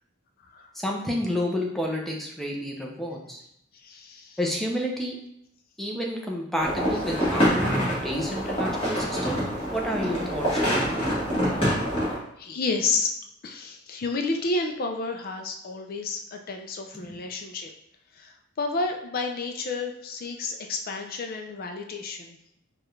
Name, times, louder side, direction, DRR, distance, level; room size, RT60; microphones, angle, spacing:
voice 1, 0.7-3.4 4.4-5.2 5.8-9.4 9.7-10.6 17.1-17.2, equal, ahead, -1 dB, 0.6 m, -30 dB
voice 2, 3.8-4.4 11.0-11.9 12.4-13.1 13.4-17.7 18.1-22.6, left 3 dB, 45° left, 4 dB, 0.4 m, -31 dB
sound 1, 6.6-12.2, equal, 25° left, 1.5 m, -26 dB
4.8 x 2.3 x 3.2 m, 0.75 s
head